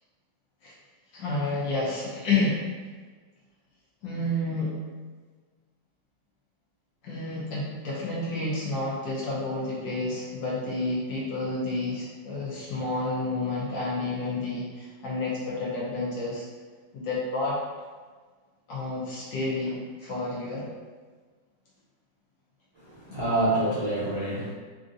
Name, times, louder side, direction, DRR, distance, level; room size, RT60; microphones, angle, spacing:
voice 1, 1.1-2.6 4.0-4.7 7.0-16.5 16.9-17.6 18.7-20.7, left 2 dB, 75° left, -6 dB, 1.4 m, -30 dB
voice 2, 22.8-24.5, right 2 dB, 35° right, -12 dB, 0.4 m, -27 dB
3.6 x 2.7 x 2.5 m, 1.5 s
omnidirectional pair, 2.1 m